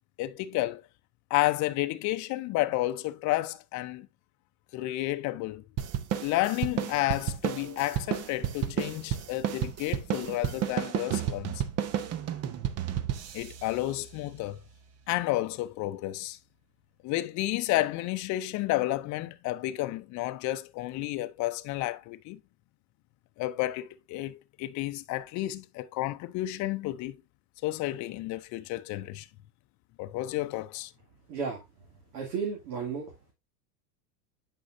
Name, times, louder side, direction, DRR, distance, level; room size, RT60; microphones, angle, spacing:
voice 1, 0.2-0.8 1.3-4.1 4.7-5.6 6.2-11.6 13.3-14.6 15.1-16.4 17.0-22.4 23.4-27.2 27.6-29.3 30.0-30.9, left 16 dB, 40° left, 0.6 m, -31 dB
sound 1, 5.8-14.6, right 10 dB, 35° right, 0.7 m, -32 dB
voice 2, 32.1-33.0, right 5 dB, 80° right, 2.6 m, -33 dB
8.5 x 5.5 x 2.6 m
supercardioid pair, 120°, 47 cm